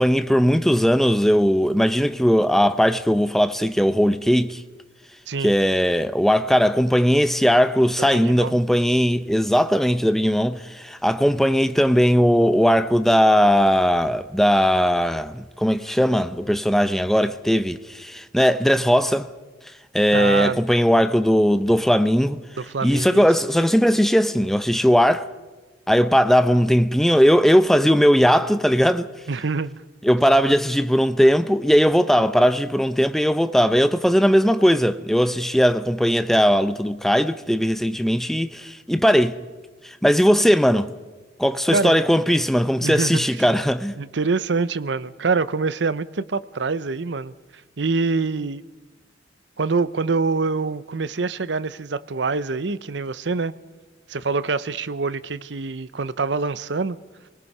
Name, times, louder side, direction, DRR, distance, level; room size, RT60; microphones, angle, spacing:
voice 1, 0.0-4.6 5.4-19.3 19.9-22.4 22.8-25.3 25.9-29.1 30.0-39.4 39.8-40.9 41.4-43.9, equal, ahead, 0.7 m, -18 dB
voice 2, 8.2-8.6 20.1-20.6 22.6-23.3 29.3-29.8 41.7-42.0 42.8-43.5 44.0-47.3 47.8-48.6 49.6-53.5 54.1-57.0, right 4 dB, 70° right, 0.7 m, -25 dB
28.5 x 19.5 x 5.5 m
head